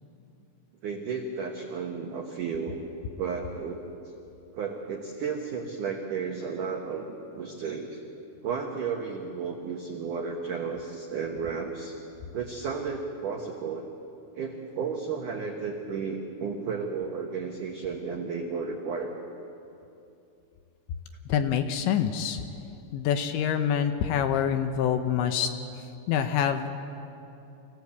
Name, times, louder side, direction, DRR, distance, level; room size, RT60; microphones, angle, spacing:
voice 1, 0.8-2.8 3.2-3.8 4.5-8.0 8.4-11.9 12.3-13.9 14.3-19.1, right 5 dB, 90° right, 1 dB, 1.8 m, -33 dB
voice 2, 21.3-22.4 22.9-25.5 26.1-26.7, left 8 dB, 75° left, 7 dB, 2.8 m, -26 dB
25.5 x 16.5 x 8.3 m, 2.8 s
omnidirectional pair, 5.8 m